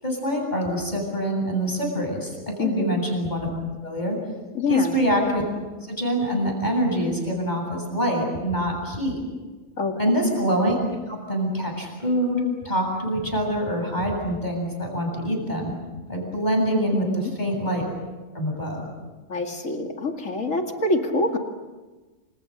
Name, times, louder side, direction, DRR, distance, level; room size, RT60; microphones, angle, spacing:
voice 1, 0.0-3.5 3.8-4.2 4.7-5.4 5.9-9.2 10.0-10.8 11.1-15.7 16.1-17.1 17.4-17.8 18.3-18.8, equal, 35° left, 1 dB, 8.0 m, -25 dB
voice 2, 2.6-2.9 4.5-4.9 9.8-10.0 16.9-17.3 19.3-21.4, left 3 dB, 85° left, 3 dB, 2.7 m, -25 dB
28.5 x 27.0 x 6.7 m, 1.3 s
omnidirectional pair, 1.3 m